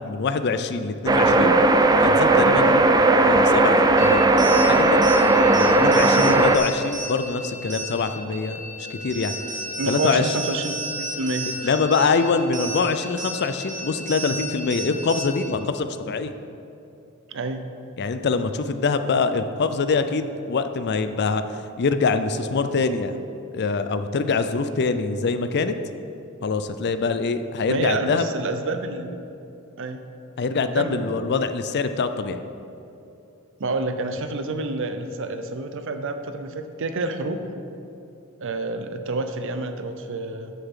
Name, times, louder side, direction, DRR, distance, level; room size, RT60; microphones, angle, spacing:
voice 1, 0.0-1.6 2.0-2.8 3.2-4.2 4.7-5.0 5.5-9.3 9.9-10.3 11.5-16.3 18.0-21.4 21.8-23.2 23.5-25.7 26.4-28.2 30.4-32.4, left 4 dB, 50° left, 10 dB, 0.5 m, -24 dB
sound 1, 1.1-6.6, right 2 dB, 15° right, 0.4 m, -17 dB
sound 2, 4.0-15.6, right 1 dB, 35° right, 1.2 m, -33 dB
voice 2, 9.8-11.7 17.3-17.7 27.7-29.2 29.8-30.0 30.7-31.1 33.6-37.5 38.4-40.5, right 2 dB, 60° right, 8 dB, 0.7 m, -28 dB
13.0 x 7.0 x 3.7 m, 2.7 s
head